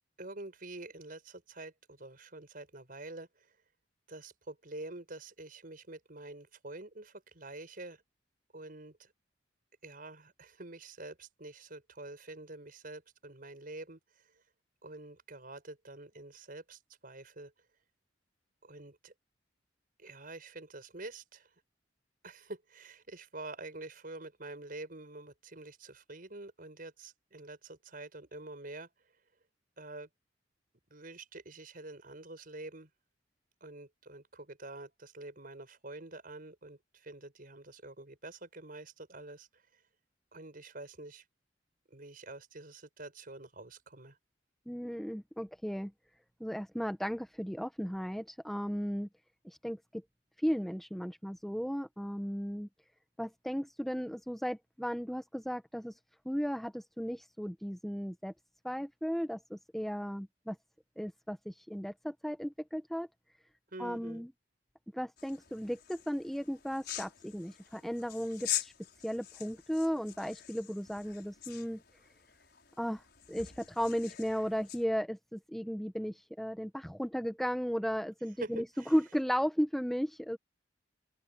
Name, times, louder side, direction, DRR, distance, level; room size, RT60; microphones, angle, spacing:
voice 1, 0.2-3.5 4.1-8.0 8.5-9.1 9.8-14.0 14.8-17.5 18.6-19.1 20.0-21.5 22.2-28.9 29.8-30.1 30.9-32.9 33.6-39.5 40.3-41.2 41.9-44.2 63.7-64.3 78.4-78.9, right 2 dB, 50° right, 5.8 m, -47 dB
voice 2, 44.7-45.9 46.4-49.1 49.4-50.0 50.4-52.7 53.2-55.9 56.2-58.3 58.6-60.6 61.0-63.1 63.8-64.3 64.9-68.7 69.0-71.8 72.8-73.0 73.3-78.6 78.9-80.4, equal, ahead, 1.4 m, -35 dB
sound 1, 65.2-74.8, left 12 dB, 60° left, 6.8 m, -44 dB
open air
head